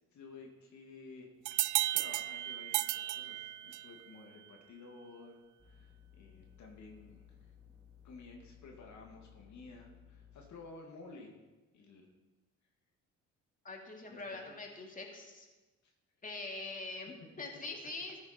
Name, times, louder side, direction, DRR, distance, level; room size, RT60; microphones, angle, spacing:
voice 1, 0.1-1.3 1.6-5.4 5.6-5.9 6.2-7.2 8.0-11.4 11.7-12.1 14.1-14.5 15.8-15.9 17.6-17.7, left 3 dB, 60° left, 1 dB, 2.3 m, -53 dB
sound 1, 1.4-4.0, right 16 dB, 65° right, 0.5 m, -34 dB
sound 2, 5.6-10.5, left 9 dB, 25° right, 3.4 m, -59 dB
voice 2, 13.6-15.5 16.2-18.2, left 3 dB, 25° left, 1 dB, 2.7 m, -43 dB
14.5 x 9.5 x 4.5 m, 1.2 s
supercardioid pair, 70°, 32 cm